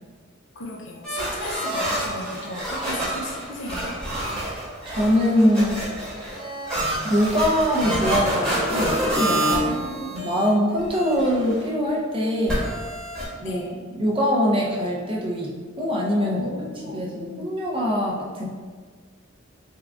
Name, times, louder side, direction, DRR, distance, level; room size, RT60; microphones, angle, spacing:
voice 1, 0.6-4.0 9.4-10.1 13.4-13.7 16.2-17.0, left 1 dB, 60° left, 1 dB, 0.5 m, -35 dB
sound 1, 1.0-10.5 10.8-11.6 12.5-13.2, right 1 dB, 5° left, 1.1 m, -27 dB
voice 2, 4.9-5.8 7.0-9.7 10.1-12.7 13.4-13.6 13.9-16.4 16.9-18.5, equal, 25° right, -3 dB, 0.5 m, -23 dB
3.6 x 2.4 x 3.4 m, 1.5 s
head